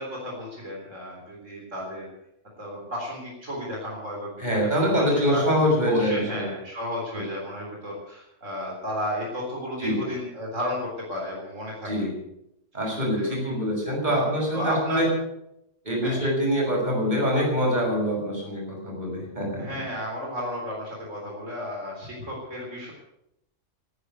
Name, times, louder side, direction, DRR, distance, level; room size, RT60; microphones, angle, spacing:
voice 1, 0.0-2.1 2.6-5.4 5.8-11.9 13.2-13.6 14.1-14.2 14.5-15.0 16.0-16.2 19.6-22.9, equal, 75° right, -1 dB, 4.3 m, -33 dB
voice 2, 4.4-6.5 7.1-7.2 9.8-10.0 11.8-12.1 12.7-15.1 15.8-19.6, equal, 35° right, -1 dB, 6.5 m, -24 dB
18.0 x 9.9 x 8.1 m, 0.81 s
omnidirectional pair, 1.3 m